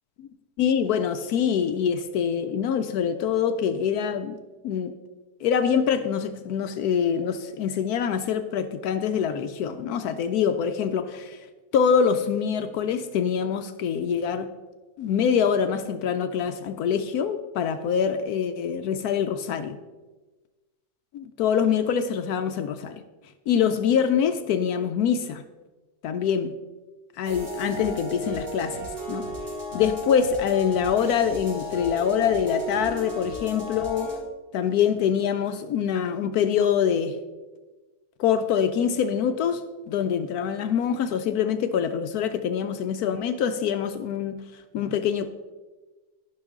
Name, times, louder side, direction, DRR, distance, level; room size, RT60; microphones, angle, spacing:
voice 1, 0.6-4.4 4.6-4.9 5.4-11.4 11.7-14.5 15.0-19.8 21.1-23.0 23.5-25.4 26.0-26.5 27.2-29.3 29.7-34.1 34.5-37.2 38.2-44.4 44.7-45.3, left 7 dB, 70° left, 9 dB, 1.0 m, -25 dB
sound 1, 27.2-34.2, equal, 75° right, 3.8 m, -35 dB
13.5 x 5.8 x 3.6 m, 1.2 s
omnidirectional pair, 1.8 m